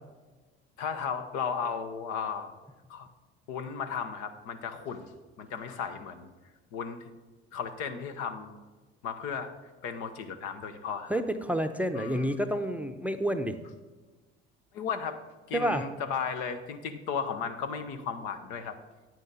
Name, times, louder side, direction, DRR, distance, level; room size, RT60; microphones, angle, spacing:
voice 1, 0.8-2.5 2.9-3.1 3.5-5.1 5.4-6.3 6.7-7.1 7.5-8.6 9.0-9.5 9.8-11.1 11.9-12.3 14.7-15.2 15.5-18.8, left 6 dB, 65° left, 8 dB, 0.9 m, -35 dB
voice 2, 11.1-13.6 15.5-15.8, right 1 dB, 5° right, 9 dB, 0.7 m, -29 dB
9.1 x 9.0 x 4.1 m, 1.3 s
hypercardioid pair, 55°, 31 cm